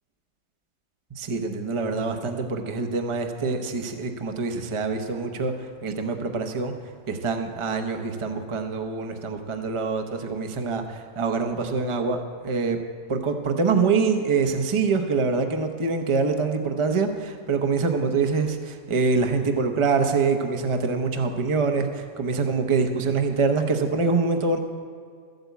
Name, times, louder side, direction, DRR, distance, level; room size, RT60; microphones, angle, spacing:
voice 1, 1.2-6.7 7.1-12.8 13.1-24.6, right 4 dB, 25° right, 5 dB, 0.7 m, -25 dB
12.5 x 7.9 x 8.3 m, 2.1 s
omnidirectional pair, 1.5 m